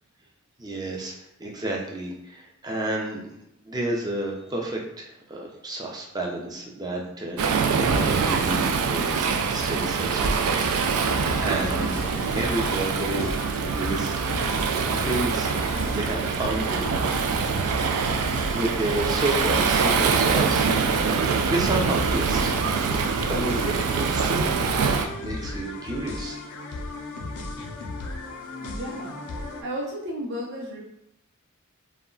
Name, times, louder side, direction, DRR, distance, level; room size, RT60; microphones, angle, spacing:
voice 1, 0.6-3.3 3.6-13.4 13.7-14.3 14.5-17.4 18.5-20.7 21.0-22.6 22.9-24.5 25.1-26.4, right 1 dB, 20° right, -1 dB, 0.4 m, -31 dB
Waves surf, 7.4-25.1, right 5 dB, 85° right, 0.3 m, -24 dB
sound 1, 10.4-29.6, left 2 dB, 90° left, 0.4 m, -35 dB
voice 2, 28.6-30.8, equal, 55° right, -5 dB, 0.6 m, -34 dB
2.2 x 2.1 x 3.6 m, 0.80 s
head